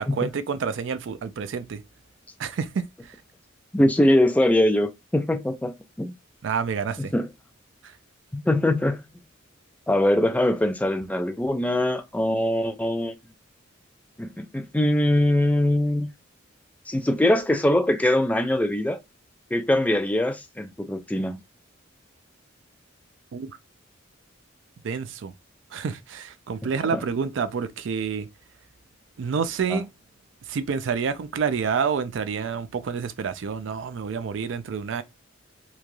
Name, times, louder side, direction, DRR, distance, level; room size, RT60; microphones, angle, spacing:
voice 1, 0.0-1.8 2.4-3.2 6.4-7.1 23.3-23.5 24.8-25.3 25.7-28.3 29.2-29.9 30.5-35.0, right 6 dB, 65° right, 0.4 m, -28 dB
voice 2, 3.7-6.1 7.0-7.3 8.3-9.0 9.9-13.1 14.2-16.1 16.9-19.0 19.5-21.4 26.9-27.0 29.7-29.8, left 1 dB, 10° left, 0.3 m, -22 dB
3.1 x 2.3 x 2.5 m
head